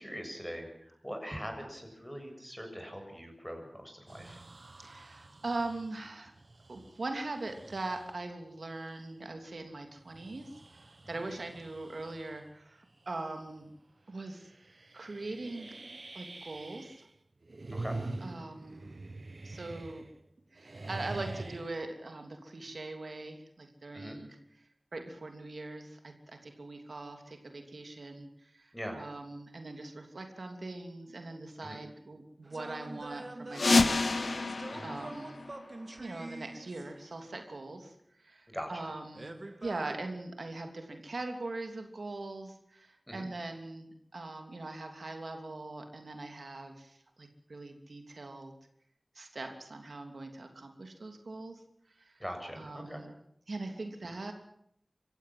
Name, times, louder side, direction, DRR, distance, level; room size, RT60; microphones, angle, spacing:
voice 1, 0.0-4.4 11.1-11.2 17.7-18.0 23.9-24.2 28.7-29.0 31.6-31.8 34.7-35.0 38.5-38.9 43.1-43.3 52.2-53.0, equal, 5° left, 4 dB, 7.3 m, -42 dB
sound 1, 4.1-8.2 8.8-8.9 9.9-12.5 12.9-13.3 13.6-13.7 14.3-17.1 17.4-20.3 20.6-21.8, right 2 dB, 65° right, 1.2 m, -45 dB
voice 2, 4.8-6.3 6.7-13.7 14.1-14.5 14.9-15.8 16.1-17.1 18.2-18.8 19.4-20.0 20.5-24.4 24.9-35.4 36.0-39.3 39.6-48.5 49.1-51.6 51.9-52.2 52.6-53.1 53.5-54.3, right 2 dB, 85° right, 5 dB, 3.0 m, -41 dB
sound 2, 32.4-37.2 39.1-40.0, right 2 dB, 50° right, 2.0 m, -45 dB
sound 3, 33.5-36.1, left 3 dB, 85° left, 0.9 m, -29 dB
24.5 x 15.5 x 7.8 m, 0.70 s
wide cardioid pair, 50°, 0 cm